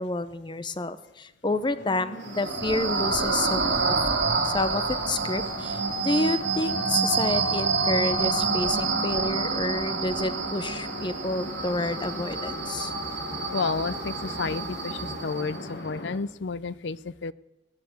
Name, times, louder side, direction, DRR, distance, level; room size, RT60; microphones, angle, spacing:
voice 1, 0.0-4.0 4.4-12.9, left 2 dB, 25° left, 12 dB, 0.7 m, -29 dB
sound 1, 1.5-16.2, left 1 dB, 70° left, 1.6 m, -40 dB
sound 2, 2.2-15.6, right 4 dB, 80° right, 2.7 m, -28 dB
sound 3, 9.1-9.4 9.7-15.3, left 1 dB, ahead, 1.9 m, -46 dB
voice 2, 13.5-17.3, left 4 dB, 85° left, 19 dB, 0.5 m, -31 dB
20.0 x 6.7 x 8.1 m, 0.95 s
head